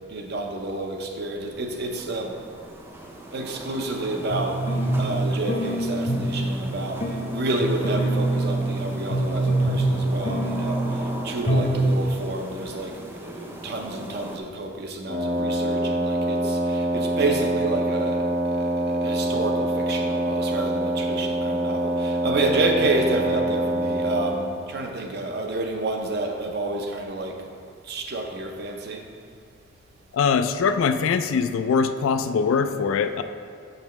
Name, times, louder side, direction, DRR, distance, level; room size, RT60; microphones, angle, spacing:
voice 1, 0.1-2.4 3.3-18.2 18.6-27.4 27.9-29.1, right 2 dB, 55° right, 3 dB, 0.6 m, -29 dB
sound 1, 1.3-14.4, right 1 dB, 10° right, 0.4 m, -39 dB
sound 2, 4.3-5.1 5.5-6.3 6.7-7.2 7.6-8.8 9.1-10.0 10.2-11.0 11.5-11.8 12.0-12.1, right 1 dB, 35° left, 0.6 m, -25 dB
Wind instrument woodwind instrument, 15.1-24.4, right 1 dB, 35° right, 0.9 m, -25 dB
voice 2, 30.1-33.2, left 5 dB, 90° left, 10 dB, 0.3 m, -22 dB
6.8 x 5.2 x 3.1 m, 2.2 s
head